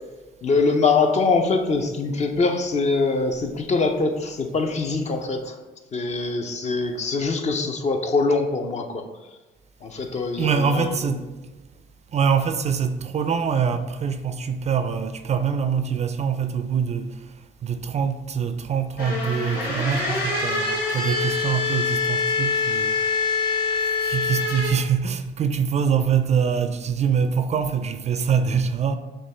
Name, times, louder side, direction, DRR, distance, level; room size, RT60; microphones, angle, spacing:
voice 1, 0.4-5.5 5.9-9.0 9.8-11.0, left 3 dB, 40° left, 0.6 m, -23 dB
voice 2, 10.4-11.3 12.1-17.1 17.6-23.0 24.0-29.0, right 6 dB, 40° right, 0.3 m, -24 dB
sound 1, 19.0-24.7, left 4 dB, 70° left, 1.4 m, -25 dB
6.3 x 2.3 x 3.3 m
cardioid pair, 80°, 17 cm